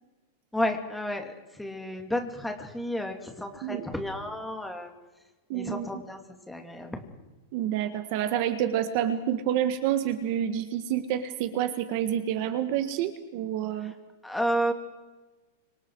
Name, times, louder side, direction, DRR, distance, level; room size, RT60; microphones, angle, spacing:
voice 1, 0.5-4.9 5.5-6.2 6.5-7.0 14.2-14.7, equal, 5° left, 3 dB, 2.6 m, -31 dB
voice 2, 5.5-5.9 7.5-13.9, right 10 dB, 40° right, 9 dB, 1.7 m, -28 dB
30.0 x 26.0 x 4.8 m, 1.2 s
supercardioid pair, 170°, 0 cm